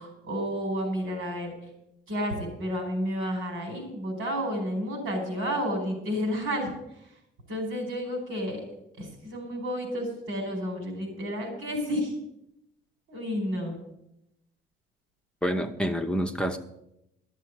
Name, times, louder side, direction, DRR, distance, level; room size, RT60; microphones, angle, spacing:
voice 1, 0.0-1.6 2.1-7.2 7.5-8.6 9.0-12.2 13.1-13.7, equal, 90° right, 3 dB, 4.8 m, -31 dB
voice 2, 15.4-16.6, equal, 5° left, 6 dB, 0.9 m, -27 dB
12.0 x 7.4 x 7.9 m, 0.85 s
cardioid pair, 90°, 20 cm